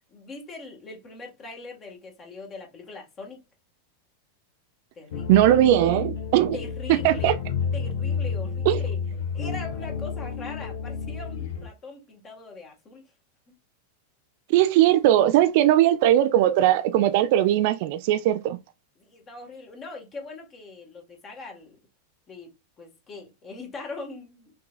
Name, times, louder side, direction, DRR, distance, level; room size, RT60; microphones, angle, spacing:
voice 1, 0.1-3.4 5.0-5.3 6.5-7.4 7.7-9.0 9.3-13.0 19.0-21.8 22.3-22.5 22.8-24.5, left 3 dB, 25° left, 1.8 m, -41 dB
sound 1, 5.1-11.7, left 6 dB, 55° left, 1.4 m, -30 dB
voice 2, 5.3-6.6 7.0-7.4 8.7-8.8 14.5-18.6, right 13 dB, 50° right, 0.5 m, -19 dB
5.9 x 3.5 x 2.5 m
figure-of-eight pair, 90°, 0 cm